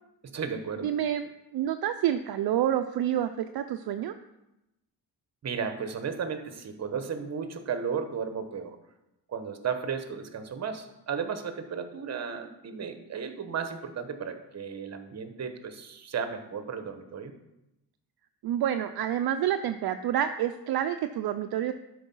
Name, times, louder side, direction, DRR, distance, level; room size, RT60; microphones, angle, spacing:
voice 1, 0.2-0.9 5.4-8.8 9.3-17.3, right 6 dB, 40° right, 9 dB, 1.0 m, -34 dB
voice 2, 0.8-1.3 1.5-4.1 18.4-21.7, right 10 dB, 60° right, 8 dB, 0.5 m, -28 dB
12.0 x 4.7 x 5.5 m, 0.90 s
cardioid pair, 135°, 42 cm